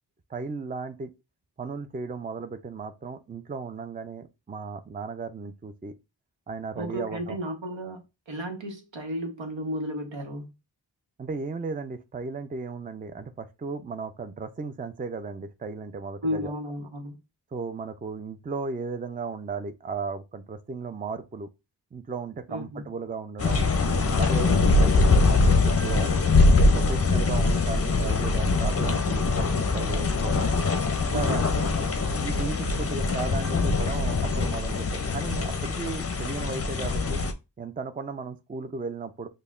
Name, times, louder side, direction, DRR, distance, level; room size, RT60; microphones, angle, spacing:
voice 1, 0.3-1.1 1.6-5.9 6.5-7.4 11.2-16.5 17.5-21.5 21.9-23.7 24.1-24.5 24.8-26.1 26.7-30.5 31.1-31.5 32.1-37.2 37.6-39.3, right 4 dB, 20° right, 0.4 m, -35 dB
voice 2, 6.8-10.5 16.2-17.2 22.5-22.9 24.5-24.8 31.0-32.0, equal, 80° right, 1.0 m, -34 dB
sound 1, 23.4-37.3, left 3 dB, 35° left, 0.5 m, -23 dB
5.4 x 2.1 x 2.5 m
wide cardioid pair, 50°, 44 cm